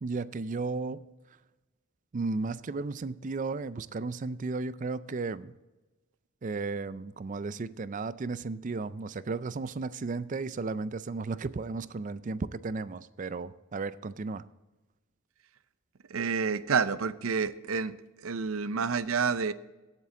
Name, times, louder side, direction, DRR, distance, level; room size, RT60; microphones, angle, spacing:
voice 1, 0.0-1.1 2.1-5.5 6.4-14.4, right 3 dB, 40° right, 16 dB, 0.4 m, -34 dB
voice 2, 16.1-18.0 18.2-19.5, right 5 dB, 80° right, 14 dB, 0.6 m, -29 dB
17.0 x 7.5 x 3.8 m, 1.1 s
head